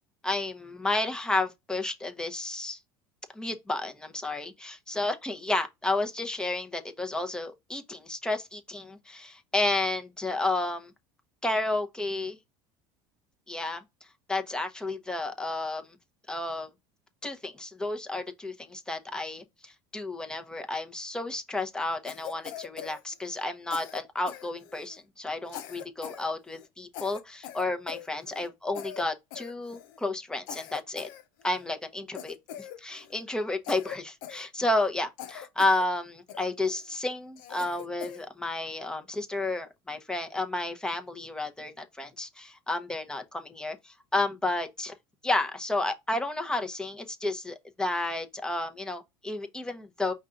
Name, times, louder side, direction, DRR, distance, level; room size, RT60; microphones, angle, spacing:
voice 1, 0.2-2.8 3.3-10.9 11.4-12.4 13.5-13.8 14.3-15.8 16.3-16.7 17.2-31.1 31.4-44.9 45.2-50.1, left 2 dB, 5° left, 0.8 m, -31 dB
Cough, 22.0-23.5 23.7-25.0 25.5-26.3 26.5-26.7 26.9-28.5 28.7-29.1 29.3-30.0 30.5-31.7 32.1-33.2 33.6-34.9 35.2-35.9 36.3-36.8 37.4-38.3, left 11 dB, 80° left, 0.7 m, -42 dB
5.4 x 2.4 x 3.8 m
supercardioid pair, 115°, 11 cm